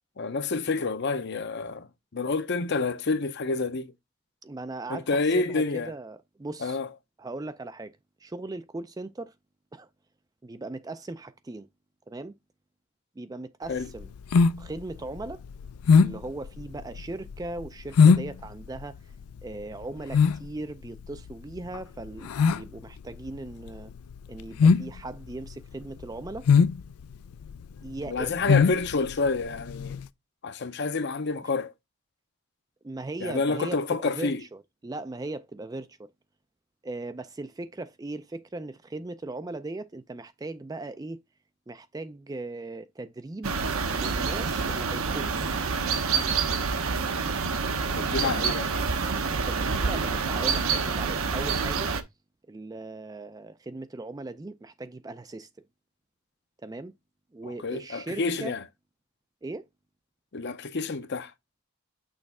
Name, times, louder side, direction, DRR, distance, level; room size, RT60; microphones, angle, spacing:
voice 1, 0.2-3.9 4.9-5.9 6.6-6.9 13.7-13.9 28.1-30.0 30.4-31.7 33.2-34.4 47.9-48.7 57.4-58.6 60.3-61.3, left 3 dB, 50° left, 0.7 m, -28 dB
voice 2, 4.4-6.8 7.2-9.3 9.7-9.9 10.4-11.7 12.1-12.4 13.2-14.1 14.6-15.4 16.0-19.0 19.4-23.9 24.3-26.5 27.8-28.7 32.8-36.1 36.8-41.2 41.7-43.6 43.9-45.3 47.8-48.3 49.4-51.9 52.5-55.5 56.6-56.9 57.3-58.6 59.4-59.7, right 2 dB, 15° right, 0.3 m, -38 dB
sound 1, 13.7-30.1, left 5 dB, 90° left, 0.4 m, -23 dB
sound 2, 43.4-52.0, right 5 dB, 70° right, 0.8 m, -27 dB
6.4 x 3.1 x 4.7 m
head